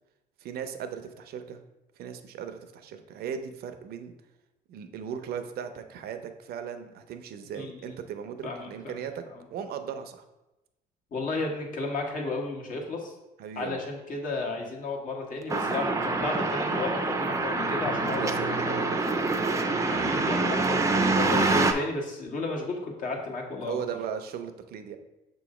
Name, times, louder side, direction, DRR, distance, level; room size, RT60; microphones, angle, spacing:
voice 1, 0.4-1.6 2.0-4.1 4.7-9.2 9.5-10.2 13.4-13.8 18.1-19.0 19.3-19.7 23.6-25.0, right 8 dB, 65° right, 8 dB, 0.6 m, -37 dB
voice 2, 7.5-7.9 8.4-9.0 9.3-9.4 11.1-13.1 13.5-18.9 19.9-23.8, left 3 dB, 50° left, 0 dB, 1.4 m, -33 dB
sound 1, 15.5-21.7, right 3 dB, 20° right, 0.6 m, -26 dB
6.5 x 3.1 x 4.8 m, 0.99 s
cardioid pair, 110°, 17 cm